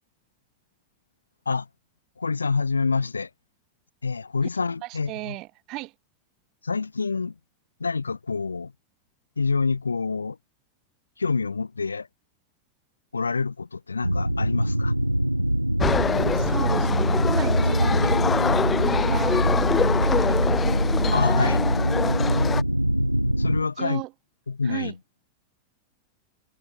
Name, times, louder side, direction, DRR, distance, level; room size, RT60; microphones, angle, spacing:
voice 1, 2.2-3.3 4.0-5.4 6.6-7.4 7.8-8.7 9.4-10.4 11.2-12.1 13.1-14.9 21.1-21.6 23.4-24.0 24.5-25.0, left 4 dB, 75° left, 0.4 m, -27 dB
voice 2, 4.8-5.9 16.3-19.4 19.8-20.8 23.8-24.1 24.6-24.9, right 21 dB, 40° right, 0.8 m, -36 dB
sound 1, 14.0-23.6, equal, 90° right, 0.4 m, -23 dB
sound 2, 15.8-22.6, left 6 dB, 20° left, 0.6 m, -25 dB
figure-of-eight pair, 90°, 0 cm